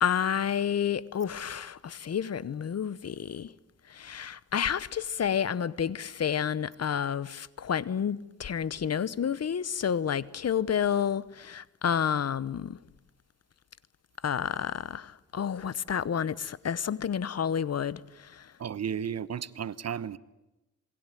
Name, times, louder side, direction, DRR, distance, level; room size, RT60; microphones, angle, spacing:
voice 1, 0.0-3.5 3.9-12.8 14.2-18.5, left 8 dB, 55° left, 1.0 m, -30 dB
voice 2, 18.6-20.2, right 8 dB, 55° right, 1.0 m, -33 dB
27.5 x 21.0 x 9.2 m
cardioid pair, 80°, 30 cm